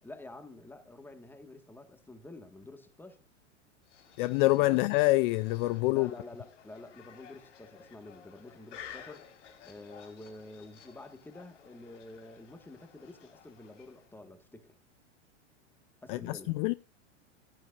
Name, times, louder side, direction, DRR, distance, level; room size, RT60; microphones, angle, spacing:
voice 1, 0.0-3.2 4.5-4.9 5.9-9.3 9.6-14.8 16.0-16.6, left 2 dB, 5° left, 1.8 m, -49 dB
sound 1, 3.8-14.2, left 9 dB, 80° left, 5.0 m, -54 dB
voice 2, 4.2-6.1 16.1-16.7, left 20 dB, 45° left, 0.5 m, -26 dB
16.5 x 12.0 x 2.6 m
hypercardioid pair, 130°, 36 cm